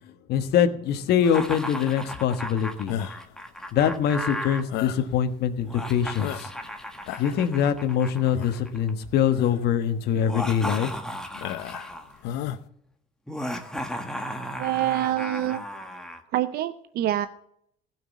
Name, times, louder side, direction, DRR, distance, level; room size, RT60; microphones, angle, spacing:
voice 1, 0.3-2.9 3.7-6.5 7.2-11.0, left 8 dB, 65° left, 9 dB, 1.3 m, -24 dB
Laughter, 1.2-4.6 5.6-8.9 10.1-12.2 13.3-16.2, equal, 5° left, 1.5 m, -35 dB
sound 1, 2.9-3.3 4.7-5.1 5.7-5.8 6.2-6.7 7.0-7.5 8.3-8.7 9.3-9.6 10.2-10.3 11.3-11.9 12.2-12.6, left 10 dB, 85° left, 0.8 m, -33 dB
voice 2, 14.5-15.6 16.3-17.3, right 13 dB, 65° right, 12 dB, 0.6 m, -26 dB
15.5 x 6.0 x 7.3 m, 0.70 s
cardioid pair, 100°, 18 cm